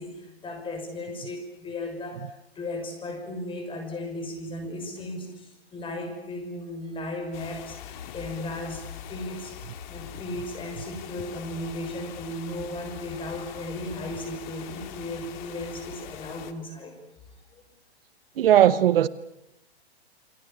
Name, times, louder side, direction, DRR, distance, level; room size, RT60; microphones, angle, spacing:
voice 1, 0.0-17.0 17.5-17.6, left 1 dB, 15° left, 6.4 m, -36 dB
sound 1, 7.3-16.5, left 9 dB, 45° left, 2.2 m, -42 dB
voice 2, 18.4-19.1, right 11 dB, 60° right, 1.0 m, -18 dB
28.5 x 25.0 x 7.1 m
hypercardioid pair, 125°, 32 cm